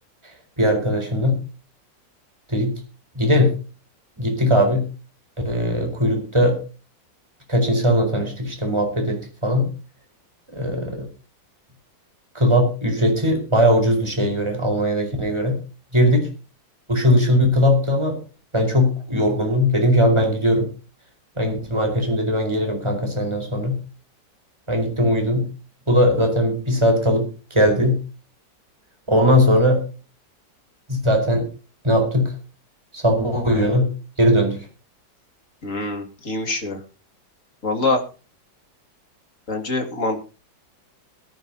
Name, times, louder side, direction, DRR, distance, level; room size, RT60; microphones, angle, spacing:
voice 1, 0.6-1.4 2.5-2.7 3.1-3.5 4.2-4.8 5.4-6.6 7.5-9.7 10.5-11.1 12.3-15.6 15.9-16.3 16.9-18.2 18.5-20.7 21.4-23.8 24.7-25.4 25.9-28.0 29.1-29.8 30.9-31.5 31.8-32.3 32.9-33.9 34.2-34.7, equal, 15° right, 3 dB, 4.6 m, -19 dB
voice 2, 35.6-36.8 37.6-38.0 39.5-40.2, left 2 dB, 40° left, 4 dB, 2.7 m, -24 dB
21.5 x 10.5 x 2.8 m, 0.34 s
omnidirectional pair, 2.0 m